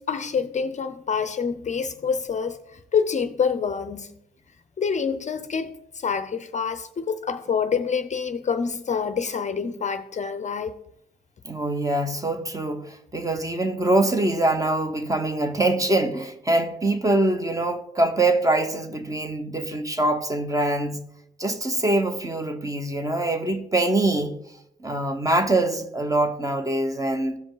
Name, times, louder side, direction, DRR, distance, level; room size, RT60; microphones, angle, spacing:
voice 1, 0.0-4.1 4.8-10.7, left 6 dB, 35° left, 0.6 m, -27 dB
voice 2, 11.4-21.0 21.4-24.4 24.8-27.4, right 2 dB, 15° right, 1.0 m, -24 dB
15.0 x 5.1 x 3.9 m
cardioid pair, 90°, 20 cm